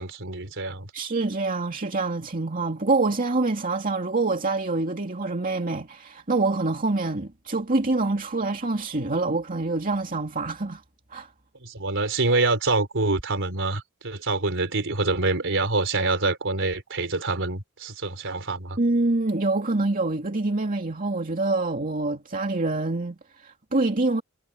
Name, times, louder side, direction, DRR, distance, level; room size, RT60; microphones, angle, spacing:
voice 1, 0.0-0.9 11.6-18.8, right 3 dB, 60° right, 4.2 m, -26 dB
voice 2, 0.9-10.8 11.1-11.3 18.8-24.2, right 2 dB, 40° right, 2.4 m, -26 dB
head